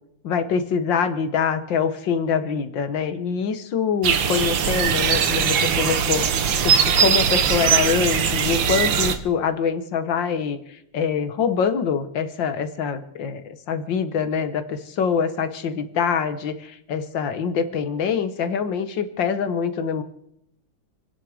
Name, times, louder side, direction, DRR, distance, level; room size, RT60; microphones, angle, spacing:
voice 1, 0.2-6.2 6.6-20.0, left 6 dB, 70° left, 10 dB, 1.9 m, -24 dB
sound 1, 4.0-9.2, right 7 dB, 75° right, 1.8 m, -20 dB
28.0 x 10.0 x 5.0 m, 0.75 s
omnidirectional pair, 2.2 m